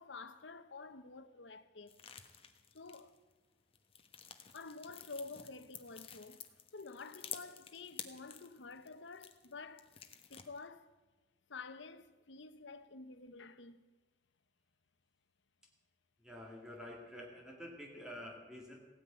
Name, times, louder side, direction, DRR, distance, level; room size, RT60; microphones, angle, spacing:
voice 1, 0.0-2.0 2.7-3.1 4.5-6.4 6.7-9.9 10.3-10.9 11.5-13.8, left 4 dB, 90° left, 0.9 m, -50 dB
sound 1, 1.9-3.3 3.7-9.5 9.8-10.7, left 8 dB, 30° left, 1.2 m, -51 dB
voice 2, 16.2-18.8, left 1 dB, 5° right, 2.2 m, -49 dB
16.0 x 9.7 x 8.9 m
head